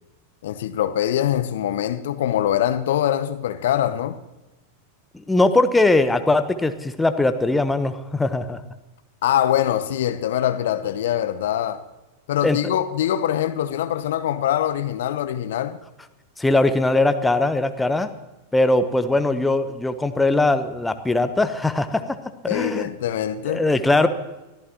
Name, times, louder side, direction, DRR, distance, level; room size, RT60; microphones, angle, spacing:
voice 1, 0.4-4.2 9.2-11.8 12.3-15.8 22.5-23.7, left 11 dB, 60° left, 0.8 m, -23 dB
voice 2, 5.1-8.6 12.4-12.6 16.4-18.1 18.5-22.0 22.4-22.9 23.5-24.1, left 2 dB, 5° left, 1.0 m, -20 dB
23.0 x 14.5 x 3.0 m
figure-of-eight pair, 90°, 0 cm